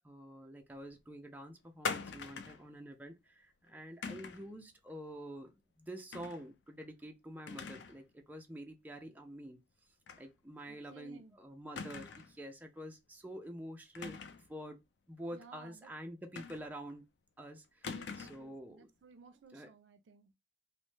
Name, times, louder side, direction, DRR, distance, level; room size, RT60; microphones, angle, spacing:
voice 1, 0.0-14.2 14.5-14.8 15.1-17.1 17.4-18.9 19.5-19.7, equal, 10° right, 0.3 m, -48 dB
sound 1, 1.8-2.7 4.0-4.5 6.1-6.4 6.8-6.9 7.5-8.0 8.3-8.4 10.1-10.3 10.6-10.7 11.8-12.4 13.9-14.5 16.4-16.9 17.8-18.5, left 5 dB, 70° left, 0.4 m, -42 dB
voice 2, 10.6-11.4 15.3-15.9 17.9-20.3, right 4 dB, 80° right, 0.4 m, -58 dB
3.1 x 2.0 x 3.1 m
head